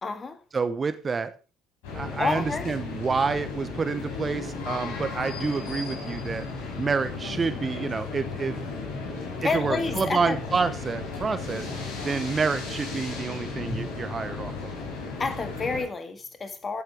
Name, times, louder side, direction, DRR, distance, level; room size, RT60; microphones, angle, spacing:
voice 1, 0.0-0.4 2.2-2.8 9.4-10.4 15.2-16.8, left 4 dB, 30° left, 1.9 m, -29 dB
voice 2, 0.5-1.3 1.9-6.4 6.8-8.6 9.5-11.7 12.0-14.7, right 4 dB, 30° right, 0.9 m, -28 dB
sound 1, 1.8-15.8, left 4 dB, 65° left, 5.6 m, -34 dB
15.0 x 7.8 x 3.4 m
figure-of-eight pair, 55°, 0 cm